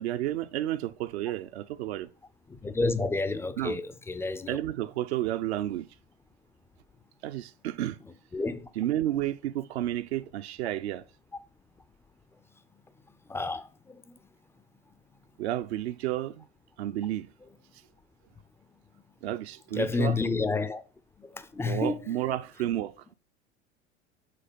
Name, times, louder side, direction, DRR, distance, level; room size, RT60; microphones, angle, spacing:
voice 1, 0.0-2.1 3.6-3.8 4.5-5.9 7.2-8.0 8.7-11.0 15.4-16.4 16.8-17.3 19.2-20.2 21.6-23.1, right 13 dB, 65° right, 0.5 m, -31 dB
voice 2, 2.6-4.6 8.3-8.7 13.3-13.6 19.7-20.8 21.3-21.9, left 3 dB, 10° left, 0.3 m, -29 dB
5.8 x 3.8 x 5.1 m
figure-of-eight pair, 80°, 35 cm